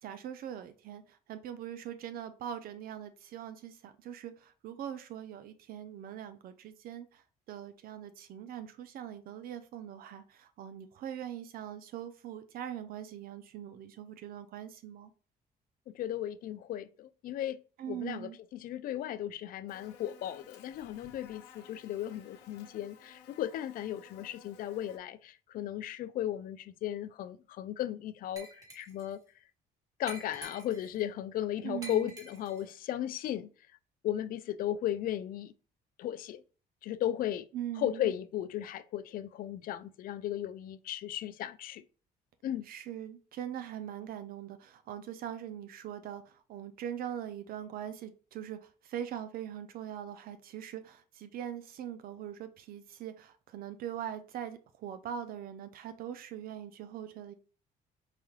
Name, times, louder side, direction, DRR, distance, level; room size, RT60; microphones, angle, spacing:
voice 1, 0.0-15.1 17.8-18.4 31.6-32.1 37.5-38.1 42.6-57.3, right 10 dB, 60° right, 0.4 m, -42 dB
voice 2, 15.9-17.6 17.9-28.5 28.7-29.2 30.0-33.5 34.0-35.5 36.0-36.4 36.8-37.5 37.8-41.8 42.4-42.6, left 11 dB, 60° left, 0.4 m, -36 dB
Buzz, 19.7-25.0, left 7 dB, 85° left, 0.8 m, -56 dB
Glass, 28.4-29.1 30.1-31.0 31.8-32.7, right 2 dB, 20° right, 1.3 m, -48 dB
4.8 x 2.3 x 3.1 m
cardioid pair, 110°, 17 cm